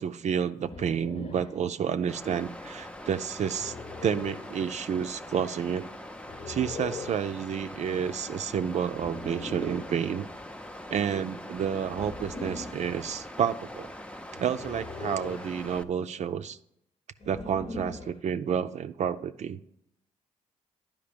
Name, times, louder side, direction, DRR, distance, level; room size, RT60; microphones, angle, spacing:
voice 1, 0.0-3.7 4.0-5.9 6.5-10.3 10.9-13.9 14.3-16.6 17.3-19.6, right 8 dB, 60° right, 9 dB, 0.4 m, -30 dB
sound 1, 0.6-1.6 3.5-4.5 6.3-7.3 8.9-9.9 11.9-12.9 14.5-15.6 17.2-18.2, left 3 dB, 45° left, 1.0 m, -41 dB
Water, 2.1-15.8, left 1 dB, 10° left, 0.6 m, -43 dB
10.5 x 5.1 x 5.1 m, 0.77 s
supercardioid pair, 60°, 14 cm